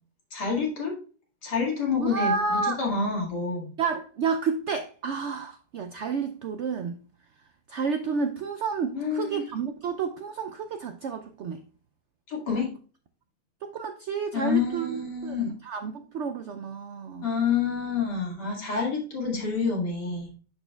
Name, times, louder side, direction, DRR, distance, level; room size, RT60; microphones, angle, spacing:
voice 1, 0.3-0.9 1.4-3.7 8.9-9.5 12.3-12.7 14.3-15.5 17.2-20.3, left 5 dB, 85° left, 2.7 m, -28 dB
voice 2, 2.0-2.8 3.8-7.0 7.7-11.6 13.6-17.3, right 5 dB, 80° right, 0.6 m, -30 dB
11.0 x 4.3 x 2.2 m
omnidirectional pair, 1.7 m